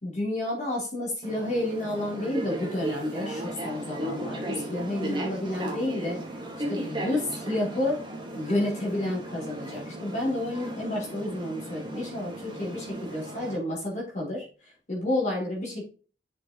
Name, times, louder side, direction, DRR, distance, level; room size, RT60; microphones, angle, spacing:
voice 1, 0.0-6.2 6.7-8.0 8.3-14.5 14.9-15.8, left 1 dB, 40° left, -3 dB, 3.8 m, -30 dB
sound 1, 1.2-13.6, right 1 dB, 25° right, 2.0 m, -36 dB
7.3 x 6.8 x 3.1 m, 0.37 s
head